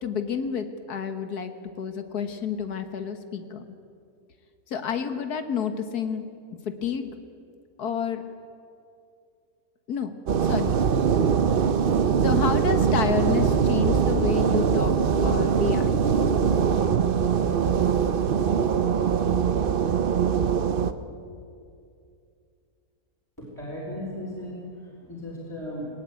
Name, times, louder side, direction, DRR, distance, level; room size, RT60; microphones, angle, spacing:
voice 1, 0.0-3.7 4.7-6.3 6.7-7.1 7.8-8.2 9.9-10.1 10.4-10.8 11.2-11.3 12.2-15.9, left 6 dB, 80° left, 8 dB, 1.9 m, -29 dB
sound 1, 10.3-20.9, right 7 dB, 45° right, 0.7 m, -22 dB
voice 2, 23.4-24.6 25.0-25.9, left 1 dB, 10° left, -6 dB, 4.5 m, -36 dB
19.0 x 18.5 x 9.3 m, 2.4 s
omnidirectional pair, 1.6 m